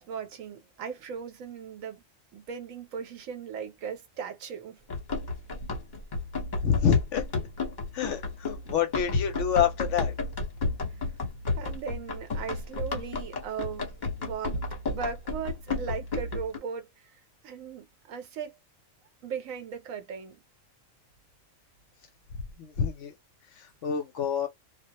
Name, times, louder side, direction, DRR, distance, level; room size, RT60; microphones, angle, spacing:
voice 1, 0.0-2.0 2.3-4.8 11.6-16.9 17.4-18.5 19.2-20.4, right 6 dB, 75° right, 1.1 m, -38 dB
Run, 4.9-16.6, left 3 dB, 40° left, 0.9 m, -32 dB
voice 2, 6.6-7.3 7.9-10.1 22.6-23.1 23.6-24.5, left 8 dB, 70° left, 0.9 m, -27 dB
2.3 x 2.0 x 2.8 m
omnidirectional pair, 1.4 m